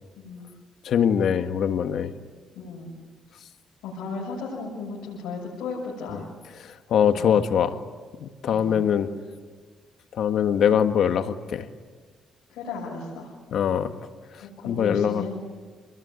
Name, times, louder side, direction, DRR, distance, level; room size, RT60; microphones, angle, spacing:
voice 1, 0.2-0.5 2.6-3.0 3.8-6.2 7.1-7.3 8.5-8.9 12.5-13.3 14.4-15.4, left 4 dB, 90° left, -4 dB, 7.1 m, -35 dB
voice 2, 0.8-2.1 6.9-7.8 8.2-9.1 10.1-11.7 13.5-13.9 14.7-15.3, left 8 dB, 70° left, 8 dB, 1.7 m, -22 dB
28.0 x 21.5 x 9.6 m, 1.5 s
cardioid pair, 90°, 0 cm